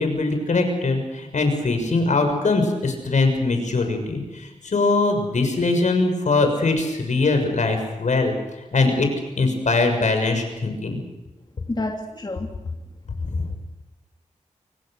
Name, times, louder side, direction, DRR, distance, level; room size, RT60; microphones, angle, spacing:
voice 1, 0.0-8.3 8.7-9.1 9.4-11.0 13.3-13.4, left 3 dB, 70° left, 5 dB, 6.6 m, -21 dB
voice 2, 11.7-12.5, left 2 dB, 35° left, 1 dB, 3.1 m, -28 dB
27.0 x 24.5 x 6.7 m, 1.0 s
cardioid pair, 55°, 13 cm